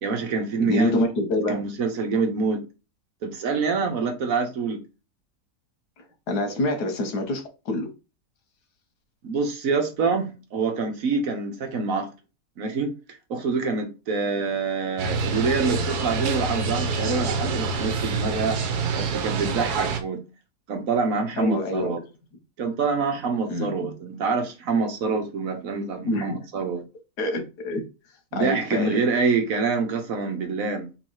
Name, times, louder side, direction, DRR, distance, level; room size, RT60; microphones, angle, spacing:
voice 1, 0.0-1.0 1.5-2.6 3.2-4.8 9.2-12.1 12.6-12.9 13.3-18.6 19.0-20.2 20.7-22.0 22.6-26.8 28.3-30.9, right 4 dB, 65° right, 1.3 m, -26 dB
voice 2, 0.6-1.6 6.0-7.9 21.4-21.9 23.5-23.9 26.0-26.5 27.2-27.8 28.3-29.0, left 1 dB, 85° left, 1.7 m, -26 dB
sound 1, 15.0-20.0, right 4 dB, 80° right, 1.3 m, -26 dB
3.8 x 2.9 x 4.6 m
omnidirectional pair, 1.7 m